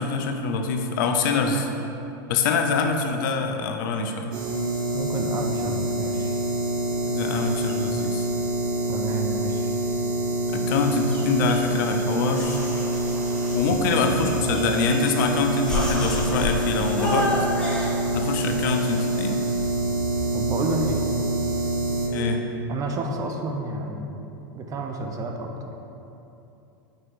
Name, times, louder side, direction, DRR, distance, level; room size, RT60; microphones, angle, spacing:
voice 1, 0.0-1.7 2.3-4.3 7.1-8.3 10.5-12.6 13.5-17.3 18.1-19.4 22.1-22.4, left 4 dB, 65° left, 4 dB, 0.5 m, -25 dB
sound 1, 4.3-22.1, right 1 dB, 70° right, 0.9 m, -26 dB
voice 2, 4.9-6.3 8.9-9.7 13.7-13.8 20.3-21.1 22.7-24.2 24.5-25.8, right 2 dB, 30° right, 3 dB, 0.4 m, -30 dB
sound 2, 11.1-12.0 12.3-13.8 14.5-15.2 15.6-16.6 17.0-17.9, left 1 dB, 5° left, 0.9 m, -30 dB
4.8 x 4.3 x 2.5 m, 2.9 s
hypercardioid pair, 105°, 11 cm